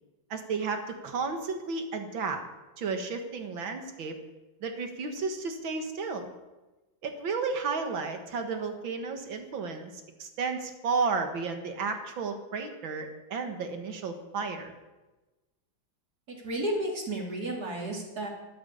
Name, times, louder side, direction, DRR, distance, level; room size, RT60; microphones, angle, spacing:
voice 1, 0.3-2.4 2.8-4.2 4.6-6.3 7.0-9.9 10.2-14.7, right 4 dB, 85° right, 6 dB, 2.4 m, -32 dB
voice 2, 16.3-18.3, right 1 dB, 50° right, 0 dB, 3.6 m, -32 dB
13.0 x 13.0 x 6.9 m, 1.1 s
omnidirectional pair, 2.1 m